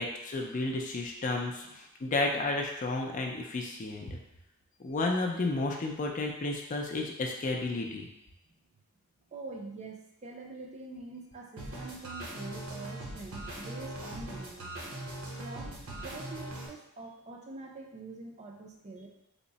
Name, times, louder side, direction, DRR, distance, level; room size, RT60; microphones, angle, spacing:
voice 1, 0.0-4.2 4.8-8.1, left 2 dB, 35° left, 1 dB, 0.4 m, -32 dB
voice 2, 9.3-14.7 15.4-19.1, right 3 dB, 30° right, 1 dB, 0.4 m, -45 dB
sound 1, 11.6-16.7, right 1 dB, 70° right, 0.9 m, -41 dB
3.5 x 2.1 x 3.9 m, 0.85 s
head